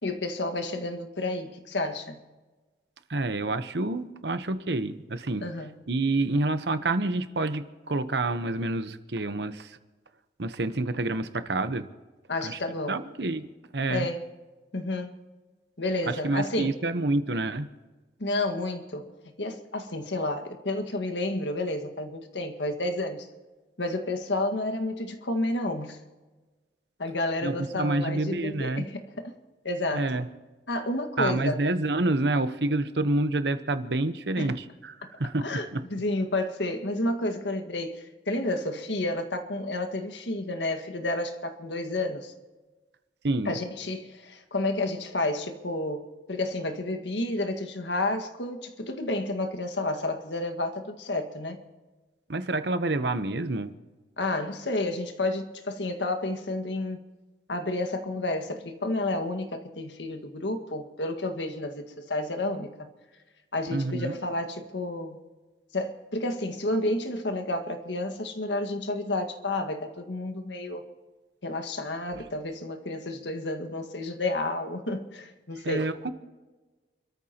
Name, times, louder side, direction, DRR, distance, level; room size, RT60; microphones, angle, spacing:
voice 1, 0.0-2.2 5.4-5.7 12.3-13.0 13.9-14.3 14.7-15.2 15.8-16.8 18.2-19.1 19.4-23.3 23.8-26.0 27.0-29.3 29.6-30.1 30.7-31.6 34.4-34.6 35.4-42.3 43.5-51.6 54.2-57.0 57.5-62.9 63.5-65.2 65.7-70.8 71.4-75.9, left 2 dB, 85° left, 1.8 m, -31 dB
voice 2, 3.1-5.4 5.9-9.8 10.4-11.9 12.4-12.6 12.9-13.5 13.7-14.1 16.1-17.7 27.4-28.9 29.9-30.3 31.2-35.8 43.2-43.6 52.3-53.7 63.7-64.1 75.6-76.1, right 2 dB, 70° right, 1.0 m, -28 dB
29.0 x 14.0 x 3.0 m
head